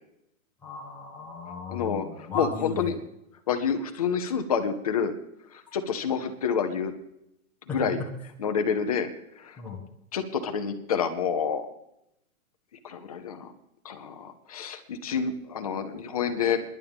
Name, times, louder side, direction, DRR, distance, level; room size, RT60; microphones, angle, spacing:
voice 1, 0.6-2.9 7.7-8.1 9.6-9.8, left 4 dB, 5° left, -4 dB, 1.1 m, -36 dB
voice 2, 1.7-3.0 3.5-5.1 5.5-6.9 7.7-8.0 8.4-9.1 9.4-9.6 10.1-11.7 12.8-13.5 13.8-16.6, left 6 dB, 25° left, 7 dB, 0.7 m, -28 dB
27.5 x 11.0 x 3.5 m, 0.83 s
hypercardioid pair, 170°, 43 cm